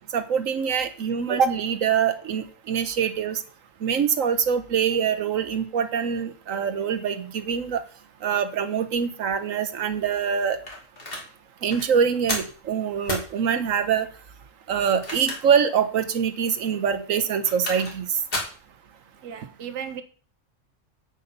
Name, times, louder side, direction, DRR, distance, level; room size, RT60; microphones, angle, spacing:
voice 1, 0.1-3.4 3.8-7.8 8.2-10.6 11.6-14.1 14.7-18.1, right 7 dB, 85° right, 1.3 m, -24 dB
sound 1, 10.7-11.3 11.7-11.9 12.3-12.6 13.1-13.3 14.8-15.6 16.0-16.1 17.2-18.0 18.3-18.6, left 1 dB, 45° left, 2.8 m, -31 dB
voice 2, 19.2-20.0, right 8 dB, 65° right, 1.2 m, -35 dB
8.1 x 8.0 x 5.4 m
omnidirectional pair, 1.3 m